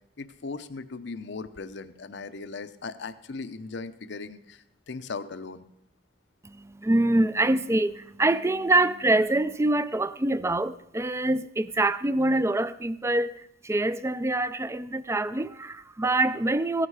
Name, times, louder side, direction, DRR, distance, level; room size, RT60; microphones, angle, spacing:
voice 1, 0.2-5.7, left 4 dB, 65° left, 0.7 m, -38 dB
voice 2, 6.4-16.9, right 2 dB, 15° right, 0.4 m, -25 dB
15.5 x 9.8 x 4.8 m
head